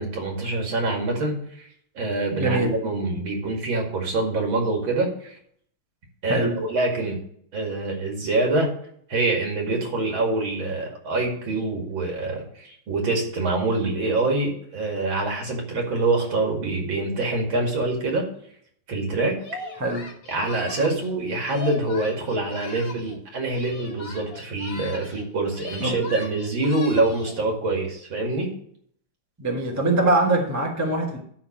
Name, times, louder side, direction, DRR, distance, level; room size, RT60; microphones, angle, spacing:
voice 1, 0.0-1.7 2.0-5.3 6.2-7.2 7.5-8.7 9.1-18.3 18.9-19.4 20.3-28.5, right 2 dB, 65° right, 1 dB, 3.0 m, -25 dB
voice 2, 2.3-2.7 6.3-6.6 19.8-20.1 25.8-26.0 29.4-31.2, right 2 dB, 10° right, 1 dB, 1.3 m, -23 dB
Singing, 19.4-23.2 23.5-25.3 25.5-27.4, left 2 dB, 35° left, 1.3 m, -39 dB
12.0 x 4.0 x 7.2 m, 0.65 s
omnidirectional pair, 2.3 m